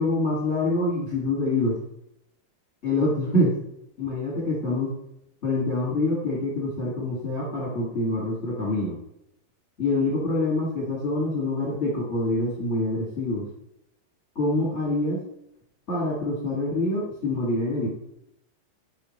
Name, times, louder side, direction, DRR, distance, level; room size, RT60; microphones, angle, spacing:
voice 1, 0.0-1.7 2.8-3.5 4.0-4.9 5.4-8.9 9.8-13.4 14.3-15.2 15.9-17.9, left 2 dB, 40° left, -7 dB, 0.9 m, -25 dB
7.8 x 5.4 x 3.2 m, 0.80 s
omnidirectional pair, 5.4 m